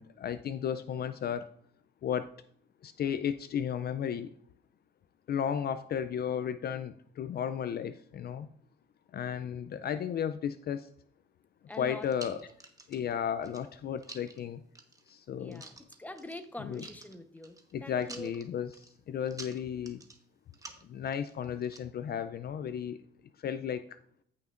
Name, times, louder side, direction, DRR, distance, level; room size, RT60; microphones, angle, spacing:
voice 1, 0.0-1.5 2.0-2.3 2.8-4.3 5.3-8.5 9.1-10.9 11.8-12.5 12.9-14.6 15.1-15.6 16.6-16.8 17.7-20.0 20.8-23.0 23.4-24.0, left 8 dB, 55° left, 12 dB, 0.4 m, -34 dB
voice 2, 11.7-12.4 15.4-15.7 16.0-17.5 17.8-18.3, left 1 dB, 10° left, 7 dB, 0.9 m, -44 dB
sound 1, 11.7-13.1 13.4-14.4 14.8-15.1 15.5-16.5 16.7-17.7 18.0-18.9 19.3-20.2 20.5-21.8, right 2 dB, 15° right, 1.1 m, -49 dB
15.0 x 5.7 x 2.5 m, 0.65 s
cardioid pair, 90°, 20 cm